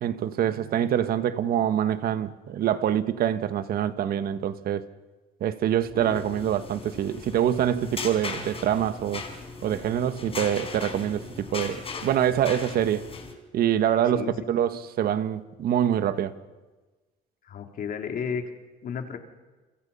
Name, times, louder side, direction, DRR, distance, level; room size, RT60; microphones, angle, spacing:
voice 1, 0.0-4.9 5.4-9.2 9.6-13.0 13.5-16.3, right 10 dB, 65° right, 1.5 m, -25 dB
sound 1, 5.8-13.3, left 4 dB, 35° left, 4.6 m, -38 dB
voice 2, 14.1-14.4 17.4-18.4 18.8-19.2, left 7 dB, 55° left, 3.3 m, -32 dB
29.0 x 25.5 x 5.6 m
cardioid pair, 110°, 17 cm